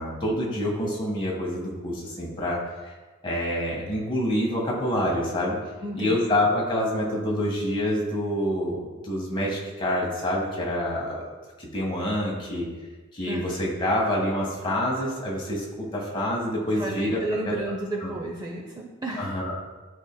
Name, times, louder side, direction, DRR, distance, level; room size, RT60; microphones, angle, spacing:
voice 1, 0.0-2.6 3.2-5.6 5.9-11.3 11.6-12.6 13.1-17.5 18.0-18.1 19.2-19.5, left 1 dB, 25° left, -3 dB, 1.4 m, -27 dB
voice 2, 5.8-6.2 13.3-13.6 16.6-19.3, right 1 dB, 20° right, 0 dB, 0.5 m, -32 dB
12.0 x 4.4 x 2.2 m, 1.3 s
head